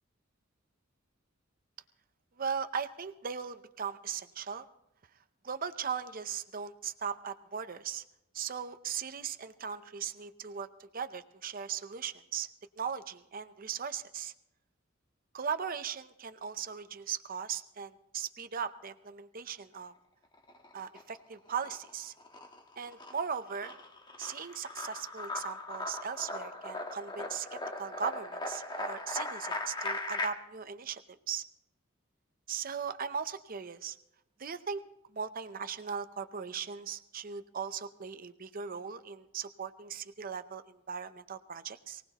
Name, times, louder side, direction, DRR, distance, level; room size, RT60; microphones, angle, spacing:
voice 1, 2.4-4.7 5.4-8.0 8.3-12.5 12.8-14.3 15.3-19.9 20.7-22.1 22.8-23.8 24.2-31.4 32.5-34.0 34.4-34.8 35.1-42.0, right 7 dB, 45° right, 10 dB, 0.7 m, -38 dB
sound 1, 20.3-21.2 21.5-30.3, left 2 dB, 20° left, 1.4 m, -39 dB
23.5 x 18.5 x 3.0 m, 0.83 s
head